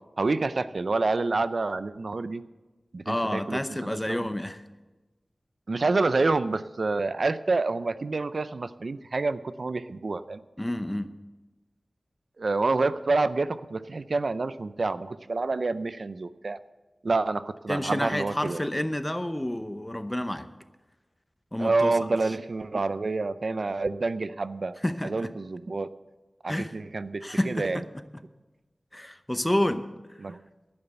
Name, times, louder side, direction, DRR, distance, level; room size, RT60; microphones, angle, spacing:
voice 1, 0.2-2.4 2.9-3.6 3.9-4.3 5.7-10.4 12.4-16.6 17.0-18.7 21.6-24.8 25.0-25.9 26.4-27.8 30.2-30.4, right 3 dB, 70° right, 13 dB, 0.4 m, -28 dB
voice 2, 3.1-4.6 10.6-11.1 17.7-20.5 21.5-21.9 24.8-25.3 26.5-26.7 27.2-27.8 28.9-29.9, left 1 dB, 15° left, 10 dB, 0.7 m, -29 dB
11.0 x 8.7 x 8.0 m, 1.2 s
wide cardioid pair, 65°, 0 cm